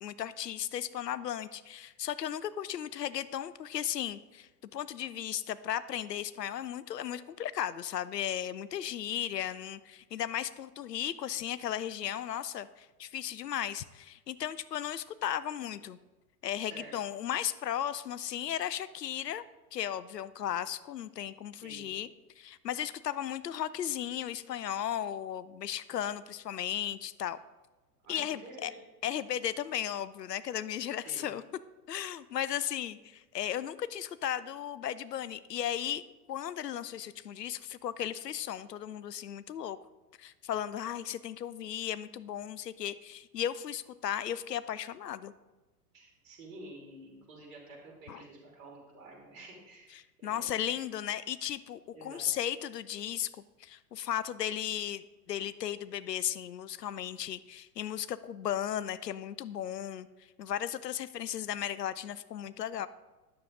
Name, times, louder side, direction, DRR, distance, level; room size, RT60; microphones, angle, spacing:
voice 1, 0.0-16.0 16.4-19.4 19.7-22.1 22.4-27.4 28.1-28.7 29.0-31.4 31.9-36.0 36.3-39.8 40.2-45.3 48.1-48.2 49.9-53.3 53.6-60.1 60.4-62.9, left 10 dB, 80° left, 16 dB, 0.5 m, -35 dB
voice 2, 16.6-16.9 21.6-21.9 28.0-28.6 31.0-31.3 45.9-50.8 51.9-52.3, right 2 dB, 55° right, -1 dB, 2.7 m, -50 dB
9.6 x 6.7 x 3.7 m, 1.1 s
figure-of-eight pair, 95°, 48 cm